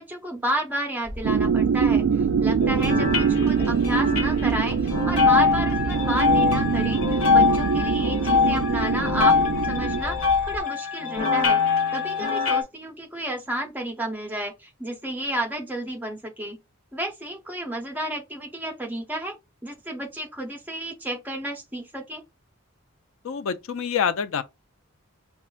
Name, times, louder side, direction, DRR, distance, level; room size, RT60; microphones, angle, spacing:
voice 1, 0.0-9.4 9.6-11.6 11.9-16.6 16.9-22.2, right 1 dB, 10° right, 0.6 m, -31 dB
sound 1, 1.0-10.6, left 1 dB, 10° left, 1.1 m, -35 dB
sound 2, 1.2-10.0, right 7 dB, 70° right, 0.3 m, -24 dB
sound 3, 2.6-12.6, left 5 dB, 80° left, 0.8 m, -23 dB
voice 2, 23.2-24.4, left 7 dB, 65° left, 0.4 m, -26 dB
5.4 x 2.3 x 2.4 m
head